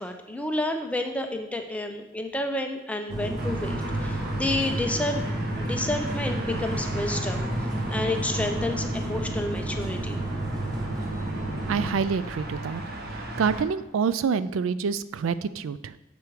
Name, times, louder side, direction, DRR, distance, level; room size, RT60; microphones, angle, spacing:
voice 1, 0.0-5.2 5.5-7.5 7.9-10.2, left 1 dB, 5° left, 4 dB, 0.5 m, -30 dB
sound 1, 3.1-11.9, right 1 dB, 20° right, 0.9 m, -31 dB
sound 2, 3.4-13.6, right 1 dB, 50° right, 0.9 m, -35 dB
voice 2, 11.7-12.8 13.4-15.9, right 6 dB, 70° right, 15 dB, 0.3 m, -27 dB
6.8 x 5.0 x 4.6 m, 0.90 s
head